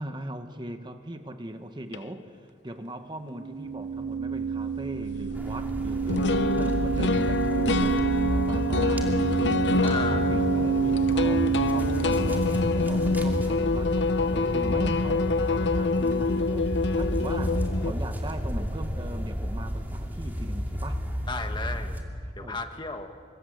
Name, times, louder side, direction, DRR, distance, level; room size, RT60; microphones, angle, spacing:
voice 1, 0.0-21.0 22.4-22.6, right 1 dB, 25° right, 7 dB, 1.2 m, -40 dB
sound 1, 1.9-2.0 5.3-5.4 6.1-17.9, left 3 dB, 70° left, 0.8 m, -26 dB
sound 2, 3.3-13.4, right 6 dB, 60° right, 0.8 m, -28 dB
sound 3, 5.3-22.0, equal, 10° right, 2.8 m, -32 dB
voice 2, 9.8-10.4 21.3-22.0 22.4-23.2, left 3 dB, 25° left, 6 dB, 1.7 m, -34 dB
28.5 x 25.5 x 7.9 m, 2.2 s
head